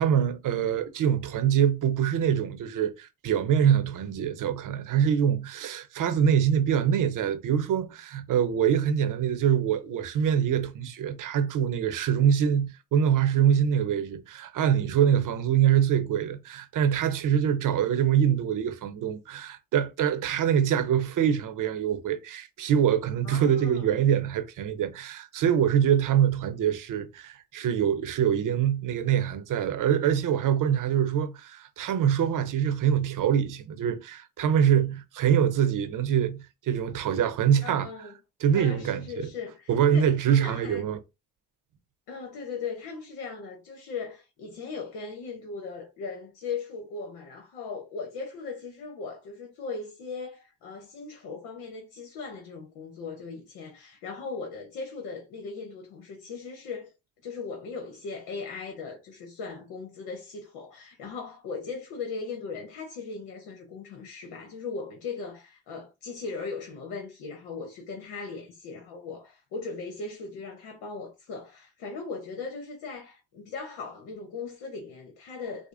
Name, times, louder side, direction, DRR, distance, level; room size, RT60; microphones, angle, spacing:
voice 1, 0.0-38.1 38.4-39.3 39.7-41.0, right 9 dB, 60° right, 0.7 m, -24 dB
voice 2, 23.2-23.9 37.6-38.1 38.5-40.8 42.1-56.9 57.2-75.7, left 4 dB, 90° left, 1.0 m, -38 dB
4.8 x 2.1 x 2.5 m
supercardioid pair, 65°, 35 cm